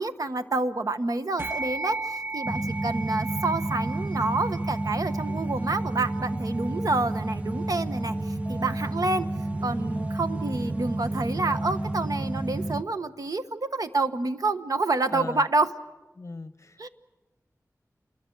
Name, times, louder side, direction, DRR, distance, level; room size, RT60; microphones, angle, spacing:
voice 1, 0.0-9.3 9.6-15.7 16.8-16.9, right 3 dB, 75° right, 9 dB, 1.2 m, -28 dB
sound 1, 1.4-11.1, right 3 dB, 40° right, 1.2 m, -38 dB
voice 2, 2.5-2.8 6.7-7.0 8.5-8.9 9.8-10.1 15.1-15.5 16.1-16.9, left 3 dB, 50° left, 13 dB, 1.0 m, -41 dB
sound 2, 2.5-12.8, right 2 dB, 20° right, 0.9 m, -30 dB
sound 3, 5.3-13.0, left 1 dB, 10° left, 1.9 m, -48 dB
27.5 x 21.5 x 7.8 m, 1.1 s
wide cardioid pair, 75°, 6 cm